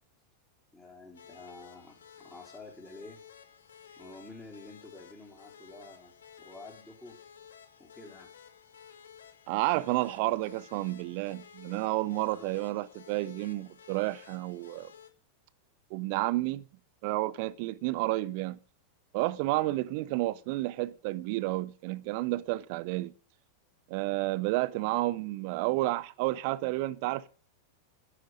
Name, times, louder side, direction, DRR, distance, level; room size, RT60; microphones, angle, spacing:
voice 1, 0.7-3.2 4.0-6.1 6.4-7.2 7.8-8.3 12.3-12.5 19.7-19.8, left 2 dB, 5° left, 4.2 m, -49 dB
sound 1, 1.1-15.1, left 8 dB, 65° left, 1.5 m, -54 dB
voice 2, 9.5-14.9 15.9-16.6 17.0-18.6 19.1-23.1 23.9-27.3, right 18 dB, 45° right, 0.7 m, -31 dB
11.5 x 10.0 x 6.5 m
figure-of-eight pair, 90°, 0 cm